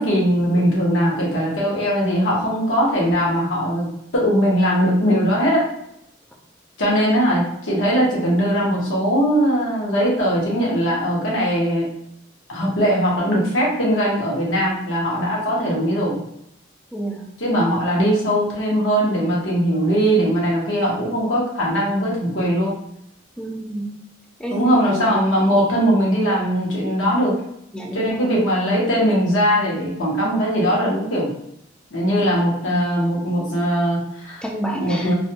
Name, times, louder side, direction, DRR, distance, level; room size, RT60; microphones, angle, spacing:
voice 1, 0.0-5.7 6.8-11.9 12.5-16.2 17.4-22.8 24.5-27.4 27.9-31.3 31.9-34.4 34.8-35.1, equal, 75° left, -4 dB, 1.0 m, -20 dB
voice 2, 16.9-17.3 23.4-23.9 24.4-25.2 27.7-28.3 34.4-35.1, equal, 5° left, 0 dB, 0.4 m, -29 dB
2.5 x 2.2 x 2.7 m, 0.78 s
head